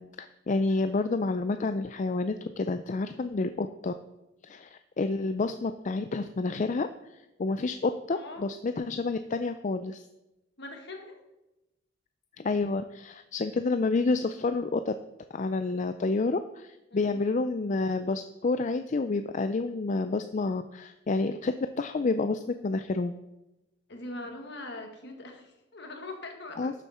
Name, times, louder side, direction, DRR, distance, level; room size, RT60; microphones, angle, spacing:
voice 1, 0.0-3.9 4.4-10.0 12.4-14.9 15.3-23.1 26.6-26.7, left 3 dB, 40° left, 9 dB, 0.4 m, -29 dB
voice 2, 8.1-8.4 10.6-11.2 16.9-17.2 23.9-26.7, left 2 dB, 60° left, 3 dB, 1.8 m, -42 dB
12.5 x 7.2 x 4.3 m, 0.95 s
head